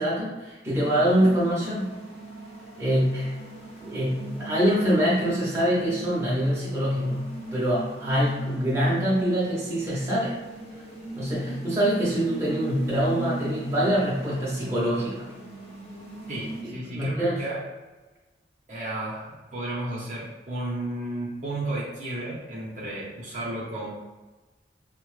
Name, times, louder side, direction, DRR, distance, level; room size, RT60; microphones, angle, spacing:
voice 1, 0.0-2.0 2.8-3.3 3.8-7.2 7.5-10.3 11.2-15.2 16.6-17.4, equal, 15° right, -7 dB, 0.9 m, -24 dB
sound 1, 0.7-16.6, right 2 dB, 35° left, 0.8 m, -39 dB
voice 2, 16.3-17.6 18.7-23.9, right 1 dB, 40° right, -6 dB, 0.8 m, -33 dB
4.3 x 2.1 x 3.1 m, 1.2 s
head